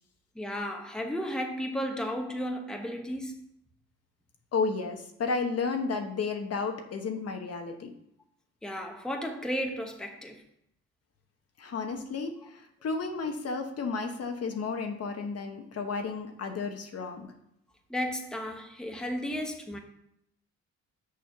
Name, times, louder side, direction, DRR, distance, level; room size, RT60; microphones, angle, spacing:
voice 1, 0.3-3.5 8.6-10.4 17.9-19.8, equal, ahead, 1.0 m, -34 dB
voice 2, 4.5-7.9 11.6-17.3, left 4 dB, 55° left, 1.1 m, -32 dB
6.7 x 4.3 x 6.6 m
cardioid pair, 90°, 30 cm